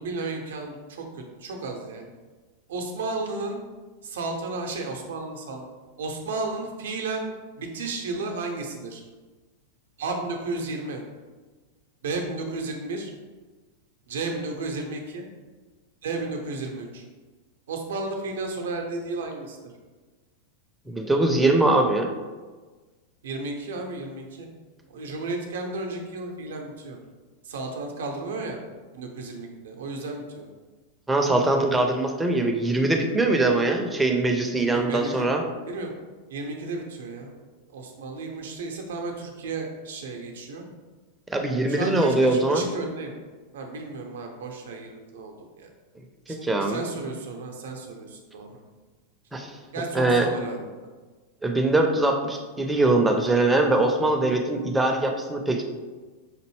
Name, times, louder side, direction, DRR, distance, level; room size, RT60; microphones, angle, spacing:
voice 1, 0.0-2.1 2.7-3.6 4.0-5.6 6.0-9.0 10.0-11.0 12.0-13.1 14.1-15.3 16.0-17.0 17.7-19.6 23.2-24.5 24.9-27.0 27.4-28.6 28.9-30.5 34.6-35.9 36.3-37.3 37.7-40.6 41.7-43.2 43.5-45.7 46.3-48.6 49.7-50.7, right 3 dB, 60° right, 3 dB, 0.6 m, -33 dB
voice 2, 20.9-22.1 31.1-35.4 41.3-42.7 46.3-46.8 49.3-49.5 49.9-50.3 51.4-55.6, right 2 dB, 10° right, 3 dB, 0.5 m, -22 dB
5.1 x 2.7 x 3.1 m, 1.3 s
figure-of-eight pair, 90°, 0 cm